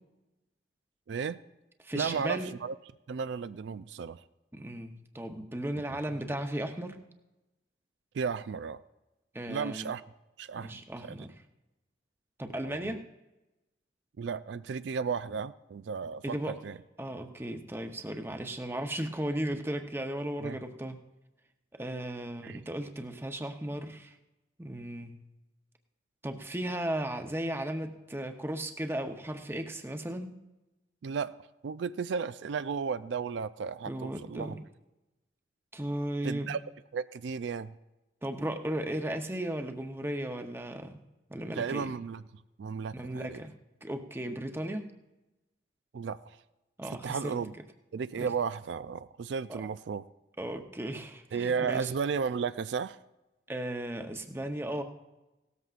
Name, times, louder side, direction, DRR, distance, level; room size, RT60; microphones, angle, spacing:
voice 1, 1.1-1.4 1.9-2.8 3.1-4.2 5.9-6.0 8.1-8.8 9.5-10.0 10.4-11.3 12.6-13.0 14.2-16.8 20.4-20.6 22.4-22.6 31.0-31.3 31.6-34.6 36.2-36.6 36.9-37.7 41.6-42.2 42.6-43.4 45.9-46.4 47.0-47.5 47.9-50.0 51.3-53.0, right 6 dB, 80° right, 14 dB, 0.4 m, -34 dB
voice 2, 1.8-2.5 4.5-7.0 9.3-9.9 10.6-11.3 12.4-13.0 16.2-16.6 17.0-21.0 21.8-24.2 24.6-25.2 26.2-30.3 33.8-34.6 35.7-36.6 38.2-41.0 41.3-41.9 42.9-43.5 43.8-44.9 46.8-47.4 48.2-48.3 49.5-49.6 50.4-51.9 53.5-54.8, right 1 dB, 15° right, 6 dB, 0.7 m, -36 dB
17.0 x 13.5 x 2.5 m, 1.0 s
head